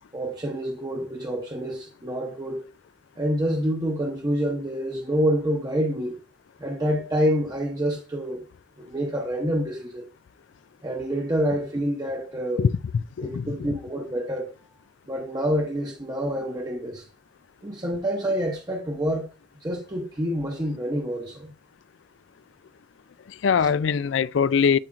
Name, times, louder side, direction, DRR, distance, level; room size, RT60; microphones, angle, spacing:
voice 1, 0.1-2.6 3.2-6.2 6.6-8.4 8.8-10.1 10.8-12.7 13.2-14.5 15.1-17.1 17.6-19.3 19.6-21.5 23.6-23.7, equal, 20° right, 0.8 m, -27 dB
voice 2, 13.2-13.7 23.3-24.8, left 6 dB, 75° left, 0.4 m, -22 dB
11.0 x 4.4 x 2.6 m
head